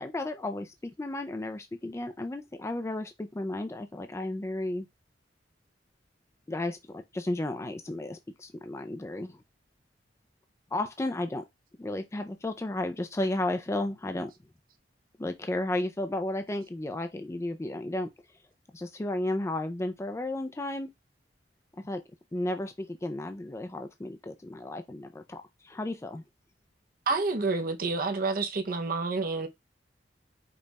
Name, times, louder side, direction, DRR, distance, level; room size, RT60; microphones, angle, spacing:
voice 1, 0.0-4.9 6.5-9.4 10.7-11.4 11.8-14.3 15.2-18.1 18.7-20.9 21.8-22.0 22.3-26.2, left 1 dB, 15° left, 0.4 m, -33 dB
voice 2, 27.1-29.5, right 3 dB, 55° right, 0.7 m, -29 dB
5.3 x 2.3 x 4.0 m
head